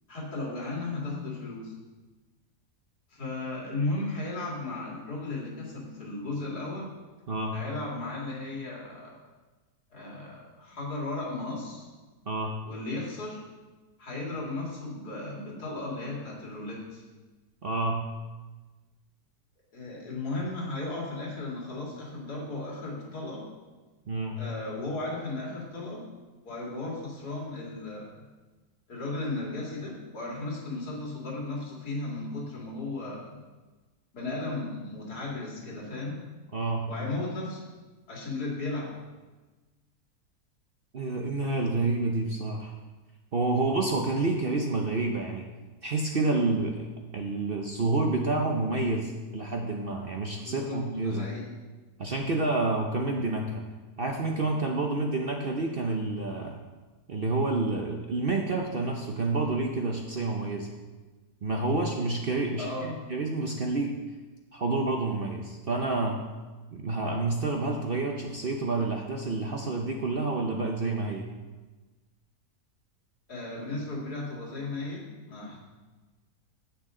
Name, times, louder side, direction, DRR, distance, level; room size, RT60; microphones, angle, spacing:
voice 1, 0.1-1.7 3.1-6.9 7.5-9.2 9.9-11.9 12.6-13.4 14.0-17.0 19.7-23.4 24.4-26.1 26.4-28.2 28.9-33.4 34.1-36.2 36.9-37.7 38.1-38.9 50.5-51.5 62.6-62.9 73.3-75.6, left 2 dB, 70° left, -3 dB, 2.8 m, -35 dB
voice 2, 7.3-7.6 12.3-12.5 17.6-18.0 24.1-24.4 36.5-36.9 40.9-42.7 43.3-45.5 45.8-46.9 47.1-51.3 52.0-53.6 54.0-56.6 57.1-60.7 61.4-64.0 64.5-66.2 66.7-71.3, right 3 dB, 50° right, 1 dB, 0.7 m, -29 dB
10.0 x 8.6 x 3.8 m, 1.2 s
omnidirectional pair, 1.7 m